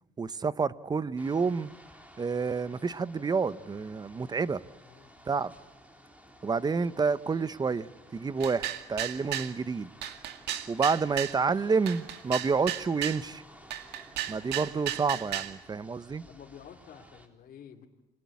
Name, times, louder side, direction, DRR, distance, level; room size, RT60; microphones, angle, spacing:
voice 1, 0.2-1.7 2.2-4.6 5.3-5.5 6.4-7.9 8.1-9.9 10.7-13.4 14.3-16.2, right 5 dB, 25° right, 0.9 m, -29 dB
sound 1, 1.2-17.3, equal, 10° right, 3.8 m, -55 dB
voice 2, 4.8-5.2 16.3-17.9, left 8 dB, 55° left, 2.8 m, -50 dB
sound 2, 8.4-9.5 10.0-11.4 11.9-13.2 13.7-15.6, right 12 dB, 80° right, 2.1 m, -34 dB
29.0 x 23.0 x 8.5 m
cardioid pair, 110°, 17 cm